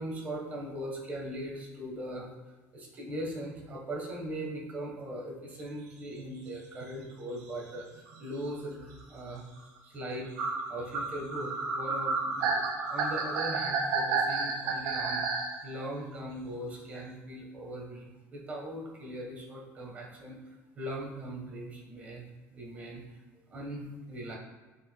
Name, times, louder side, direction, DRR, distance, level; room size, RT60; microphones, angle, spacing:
voice 1, 0.0-2.3 2.7-9.5 9.8-12.6 12.9-22.3 22.5-23.0 23.3-24.4, right 1 dB, 25° right, -2 dB, 1.3 m, -40 dB
sound 1, 6.4-6.5 6.8-7.0 7.8-7.9 8.1-8.2 8.8-9.0 9.6-9.7 10.4-15.5, right 4 dB, 70° right, 1.2 m, -31 dB
8.6 x 4.7 x 2.3 m, 1.3 s
cardioid pair, 165°, 6 cm